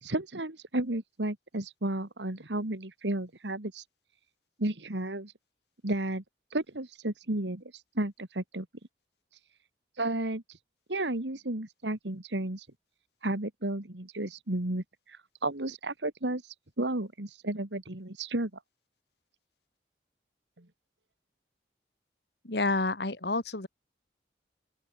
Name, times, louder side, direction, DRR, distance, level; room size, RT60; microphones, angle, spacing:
voice 1, 0.0-3.8 4.6-5.3 5.8-6.2 6.5-7.6 8.0-8.7 10.0-10.4 10.9-12.7 13.2-18.5 20.6-20.7, right 1 dB, 85° right, 2.4 m, -33 dB
voice 2, 22.4-23.7, left 3 dB, 70° left, 2.1 m, -29 dB
open air
head